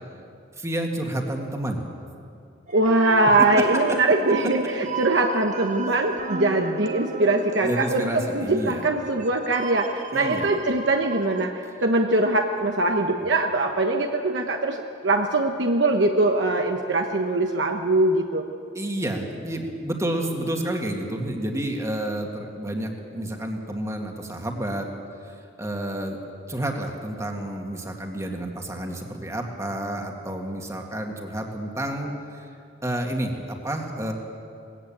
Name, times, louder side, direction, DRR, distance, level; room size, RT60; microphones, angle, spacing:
voice 1, 0.6-1.9 3.6-4.0 7.6-8.8 10.1-10.5 18.7-24.9 25.2-26.2 26.5-32.5 32.8-34.1, right 1 dB, 15° right, 2 dB, 2.1 m, -30 dB
sound 1, 2.7-11.5, right 4 dB, 40° right, 1.2 m, -35 dB
voice 2, 2.7-18.4, right 2 dB, 75° right, 3 dB, 1.1 m, -22 dB
20.0 x 15.0 x 8.8 m, 2.5 s
head